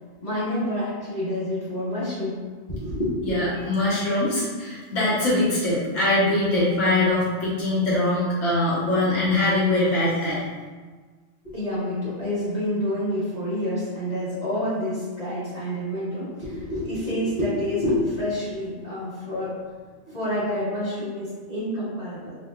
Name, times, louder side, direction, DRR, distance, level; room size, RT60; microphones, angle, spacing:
voice 1, 0.2-2.4 2.7-3.3 11.4-19.6 20.1-22.4, left 1 dB, 35° left, -12 dB, 1.2 m, -28 dB
voice 2, 3.2-10.4, left 2 dB, 85° left, -8 dB, 1.4 m, -22 dB
4.9 x 2.4 x 2.3 m, 1.4 s
omnidirectional pair, 1.3 m